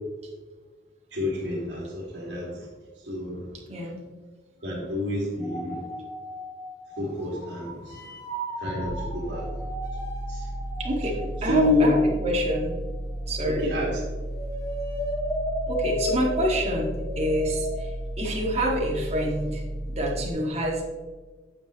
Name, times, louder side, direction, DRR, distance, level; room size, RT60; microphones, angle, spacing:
voice 1, 1.1-2.7 3.0-3.5 4.6-5.8 7.0-8.1 8.6-9.5 10.3-10.5 11.4-11.9 13.5-14.0, left 2 dB, 80° right, -6 dB, 2.1 m, -28 dB
voice 2, 3.7-4.0 10.8-12.8 13.3-13.7 15.7-19.6 19.9-20.8, equal, 40° right, -2 dB, 1.9 m, -27 dB
sound 1, 5.4-13.7 13.9-17.9, equal, 20° left, 2.3 m, -36 dB
sound 2, 8.8-20.3, right 1 dB, 5° right, 2.2 m, -34 dB
9.0 x 7.2 x 3.0 m, 1.4 s
head